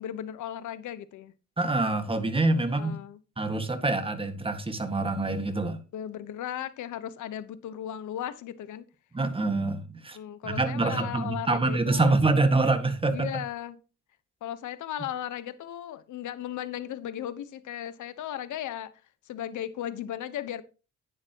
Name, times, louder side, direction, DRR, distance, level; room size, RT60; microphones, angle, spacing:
voice 1, 0.0-1.3 2.7-3.2 5.9-8.9 10.1-12.1 13.1-13.8 14.4-18.9 19.3-20.6, left 11 dB, 75° left, 1.2 m, -36 dB
voice 2, 1.6-3.0 3.4-5.8 9.1-10.2 10.4-13.3, right 2 dB, 20° right, 1.9 m, -26 dB
11.0 x 9.7 x 3.0 m
cardioid pair, 90°, 30 cm